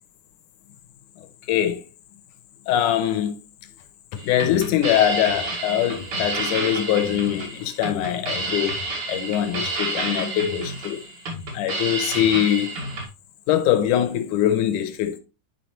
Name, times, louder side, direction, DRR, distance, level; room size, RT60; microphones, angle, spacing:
voice 1, 1.5-1.8 2.7-3.4 4.1-8.8 9.1-11.0 11.5-12.7 13.5-15.2, left 11 dB, 75° left, 2.2 m, -22 dB
sound 1, 4.2-13.1, right 2 dB, 60° right, 3.2 m, -30 dB
10.5 x 4.8 x 3.1 m
omnidirectional pair, 3.8 m